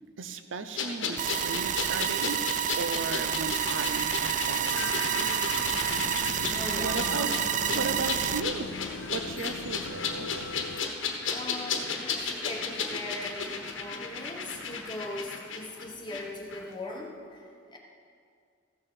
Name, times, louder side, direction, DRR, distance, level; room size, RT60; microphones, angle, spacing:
voice 1, 0.2-2.4 2.8-5.3 6.8-7.3 7.7-8.7 9.1-10.5, right 4 dB, 90° right, 9 dB, 0.7 m, -35 dB
sound 1, 0.7-16.2 16.5-16.6, left 5 dB, 90° left, 1.2 m, -34 dB
sound 2, 1.2-8.4, right 10 dB, 40° right, 0.3 m, -29 dB
sound 3, 4.7-10.8, left 5 dB, 70° left, 0.5 m, -39 dB
voice 2, 6.5-7.1 11.2-17.8, left 2 dB, 25° left, -1 dB, 1.1 m, -40 dB
14.5 x 6.5 x 6.1 m, 2.2 s
head